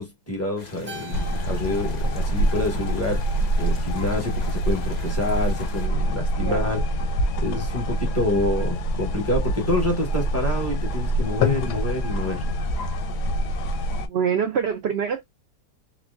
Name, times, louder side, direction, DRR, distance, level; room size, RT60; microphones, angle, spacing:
voice 1, 0.0-6.8 7.4-12.4, left 2 dB, 10° left, 1.1 m, -27 dB
sound 1, 0.6-5.9, left 3 dB, 40° left, 0.7 m, -44 dB
Keyboard (musical), 0.9-3.4, equal, 15° right, 0.4 m, -45 dB
sound 2, 1.1-14.1, equal, 90° left, 1.2 m, -25 dB
voice 2, 14.1-15.2, right 7 dB, 80° right, 0.5 m, -24 dB
4.0 x 2.2 x 2.3 m
omnidirectional pair, 1.7 m